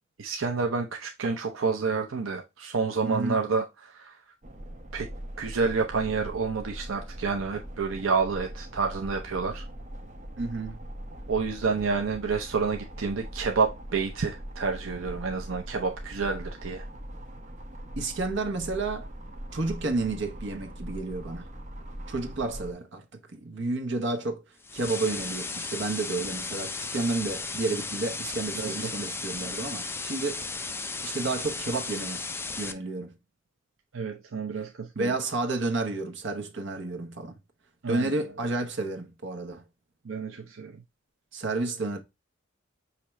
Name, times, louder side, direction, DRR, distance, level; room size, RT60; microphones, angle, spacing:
voice 1, 0.2-4.1 4.9-5.1 5.4-9.6 11.3-16.8 28.5-28.9 33.9-35.1 37.8-38.1 40.0-40.7, right 5 dB, 85° right, 0.7 m, -29 dB
voice 2, 3.0-3.4 10.4-10.8 18.0-19.1 19.5-21.5 22.1-24.4 24.7-30.4 31.0-32.2 32.6-33.1 34.9-37.4 37.9-39.6 41.3-42.0, right 3 dB, 65° right, 1.0 m, -31 dB
sound 1, 4.4-22.7, right 1 dB, 40° right, 0.9 m, -41 dB
sound 2, 24.6-32.7, left 4 dB, 10° left, 0.3 m, -35 dB
5.8 x 2.9 x 3.1 m
head